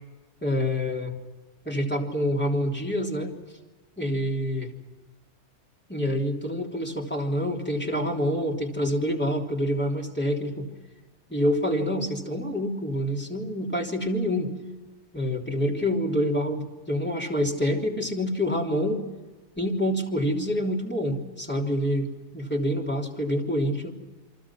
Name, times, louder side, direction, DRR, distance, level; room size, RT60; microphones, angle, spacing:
voice 1, 0.4-1.1 1.6-3.3 4.0-4.7 5.9-10.7 11.3-14.5 15.1-19.0 19.6-23.9, equal, 10° left, 0 dB, 3.3 m, -27 dB
29.0 x 24.0 x 6.1 m, 1.2 s
omnidirectional pair, 1.2 m